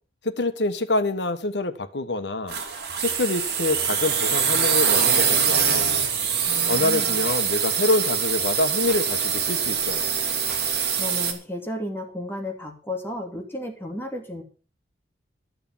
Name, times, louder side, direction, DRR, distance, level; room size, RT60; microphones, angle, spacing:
voice 1, 0.2-2.6 3.0-5.9 6.6-10.1, left 2 dB, 70° left, 1.3 m, -26 dB
sound 1, 2.5-11.3, right 7 dB, 60° right, 2.8 m, -23 dB
sound 2, 5.6-5.8 7.2-7.4 8.9-9.0 10.5-10.6, right 1 dB, 10° right, 3.2 m, -40 dB
voice 2, 6.4-7.2 10.9-14.4, left 1 dB, 15° left, 2.8 m, -33 dB
13.0 x 6.7 x 7.2 m
head